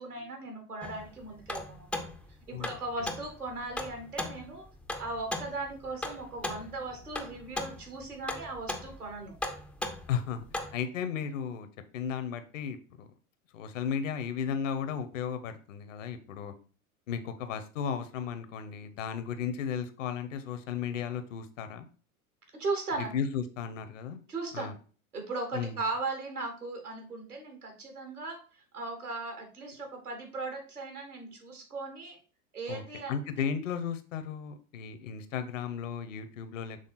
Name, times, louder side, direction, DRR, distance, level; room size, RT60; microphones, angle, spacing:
voice 1, 0.0-1.9 2.5-4.7 5.0-9.3 22.6-23.1 24.3-24.7 25.1-32.2 32.5-33.1, right 3 dB, 85° right, 3 dB, 1.9 m, -37 dB
sound 1, 0.8-10.7, left 1 dB, ahead, 0.4 m, -39 dB
voice 2, 2.5-3.1 10.1-10.4 10.7-11.7 11.9-13.1 13.5-16.5 17.1-21.9 23.0-24.2 24.5-24.7 25.5-25.8 32.7-32.8 33.1-36.8, left 7 dB, 60° left, 10 dB, 0.9 m, -35 dB
6.6 x 3.5 x 4.1 m, 0.39 s
figure-of-eight pair, 85°, 44 cm